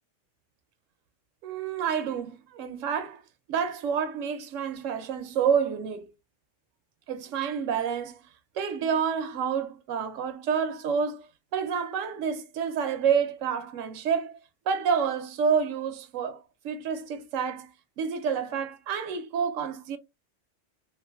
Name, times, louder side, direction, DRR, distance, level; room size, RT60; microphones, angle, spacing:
voice 1, 1.4-3.2 3.5-6.1 7.1-8.2 8.5-11.3 11.5-14.4 14.7-17.7 18.0-20.0, right 7 dB, 85° right, 1.0 m, -28 dB
3.1 x 2.3 x 2.3 m
omnidirectional pair, 1.3 m